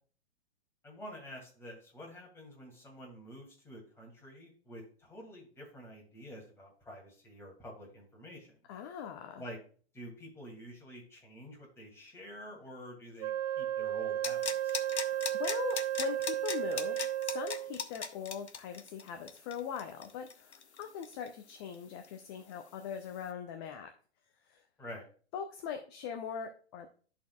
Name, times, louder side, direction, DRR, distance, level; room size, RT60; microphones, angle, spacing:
voice 1, 0.8-8.5 9.4-9.6 9.9-14.8 24.8-25.0, equal, 5° left, -2 dB, 2.4 m, -48 dB
voice 2, 8.7-9.4 14.8-23.9 24.5-24.6 25.3-26.9, left 7 dB, 25° left, 5 dB, 0.5 m, -41 dB
Wind instrument woodwind instrument, 13.2-17.8, right 12 dB, 40° right, 0.6 m, -34 dB
sound 1, 14.2-21.7 22.0-22.1, left 6 dB, 80° left, 0.8 m, -38 dB
12.5 x 4.3 x 2.3 m, 0.41 s
figure-of-eight pair, 120°, 33 cm